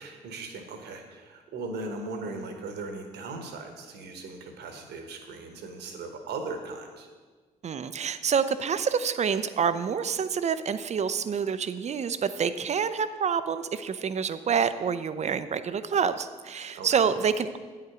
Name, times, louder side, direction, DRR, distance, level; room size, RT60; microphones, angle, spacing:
voice 1, 0.0-7.1 16.7-17.1, right 3 dB, 65° right, 5 dB, 1.2 m, -38 dB
voice 2, 7.6-17.6, right 6 dB, 35° right, 13 dB, 0.5 m, -27 dB
9.2 x 5.7 x 5.0 m, 1.4 s
figure-of-eight pair, 45°, 19 cm